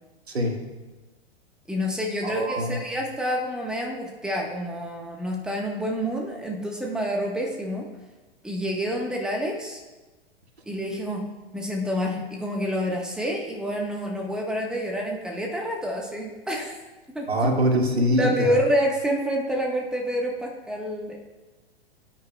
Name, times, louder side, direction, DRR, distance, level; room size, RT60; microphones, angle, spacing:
voice 1, 0.3-0.6 2.2-2.8 17.3-18.5, equal, 80° right, 2 dB, 1.8 m, -23 dB
voice 2, 1.7-7.9 8.4-9.8 10.6-11.3 11.5-16.7 17.1-17.6 18.2-21.2, equal, ahead, 0 dB, 1.3 m, -28 dB
18.5 x 9.1 x 2.4 m, 1.2 s
figure-of-eight pair, 100°, 32 cm